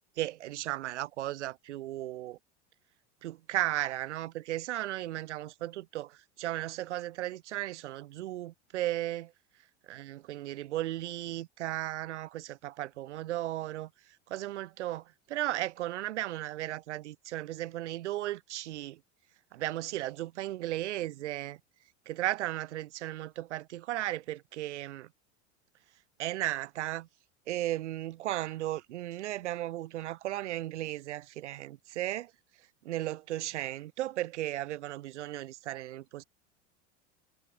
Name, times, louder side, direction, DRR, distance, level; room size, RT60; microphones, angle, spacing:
voice 1, 0.2-2.4 3.2-9.3 9.9-13.9 14.3-19.0 19.5-21.6 22.1-25.1 26.2-27.1 27.5-32.3 32.9-36.2, right 15 dB, 80° right, 1.5 m, -35 dB
hypercardioid pair, 100°, 34 cm